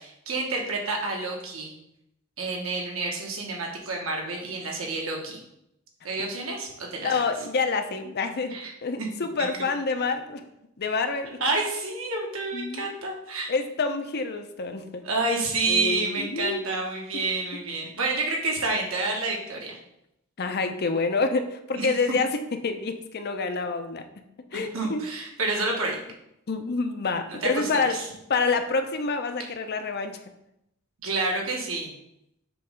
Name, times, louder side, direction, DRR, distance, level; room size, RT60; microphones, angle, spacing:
voice 1, 0.0-1.7 2.4-5.4 6.0-7.2 8.5-8.7 9.0-9.1 9.4-9.5 11.4-13.5 15.0-19.8 21.7-21.9 24.7-26.0 27.3-28.0 31.0-31.9, right 3 dB, 70° right, 0 dB, 1.4 m, -29 dB
voice 2, 7.0-10.4 10.8-11.4 12.5-12.9 13.5-15.1 15.7-16.7 20.4-22.3 22.6-24.1 24.5-25.1 26.5-27.9 28.3-30.2, left 4 dB, 50° left, 7 dB, 0.6 m, -27 dB
6.9 x 3.2 x 5.0 m, 0.81 s
head